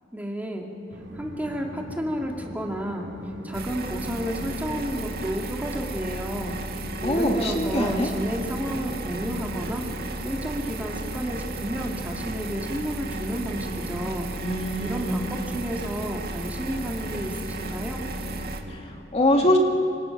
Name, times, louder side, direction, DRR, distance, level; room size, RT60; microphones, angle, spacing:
voice 1, 0.1-0.7 1.1-3.1 3.4-6.6 7.0-14.3 14.8-18.0, equal, 10° right, 0 dB, 2.3 m, -31 dB
Train, 0.9-18.8, equal, 70° right, 4.6 m, -40 dB
sound 1, 3.5-18.6, right 2 dB, 55° right, 1.9 m, -35 dB
voice 2, 7.0-8.1 14.4-15.4 18.7-19.6, left 1 dB, 35° left, 2 dB, 2.1 m, -24 dB
26.0 x 26.0 x 6.0 m, 2.5 s
head